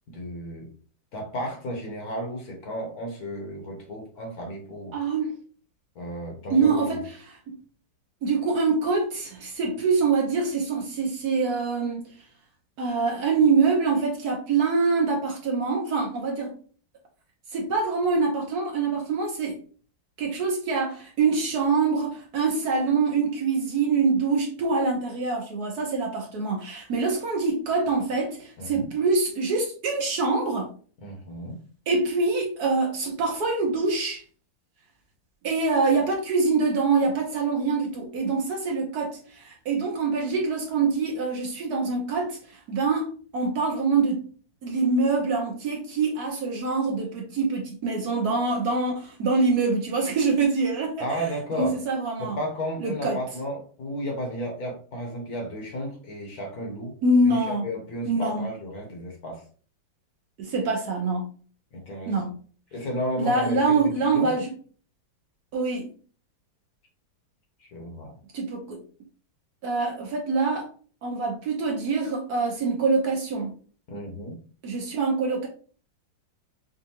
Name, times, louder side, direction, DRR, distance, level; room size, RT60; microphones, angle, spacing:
voice 1, 0.1-0.7 1.1-5.0 5.9-7.0 28.6-28.9 31.0-31.6 51.0-51.8 52.2-57.0 57.2-59.4 61.7-62.2 62.7-64.3 67.6-68.2 73.9-74.4, equal, 60° left, 1.3 m, -33 dB
voice 2, 4.9-5.4 6.5-7.6 8.2-12.1 12.8-16.5 17.5-19.6 20.2-30.7 31.9-34.2 35.4-44.2 44.6-51.2 51.6-52.4 52.8-53.2 57.0-57.6 58.1-58.5 60.4-61.3 62.1-62.3 63.2-64.5 65.5-65.9 68.3-68.8 69.6-70.7 71.0-73.5 74.6-75.5, right 4 dB, 65° right, 1.2 m, -25 dB
5.3 x 2.4 x 2.8 m
omnidirectional pair, 2.1 m